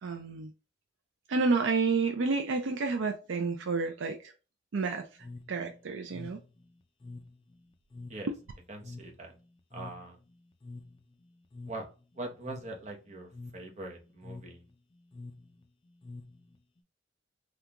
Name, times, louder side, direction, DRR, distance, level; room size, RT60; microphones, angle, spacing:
voice 1, 0.0-0.5 1.3-4.3 4.7-5.1 5.5-6.4, right 4 dB, 70° right, 0.5 m, -30 dB
sound 1, 5.2-16.8, left 3 dB, 25° left, 0.4 m, -48 dB
voice 2, 8.7-9.3 9.7-10.2 11.6-11.9 12.1-14.6, right 2 dB, 35° right, 0.9 m, -42 dB
3.6 x 2.4 x 2.8 m
head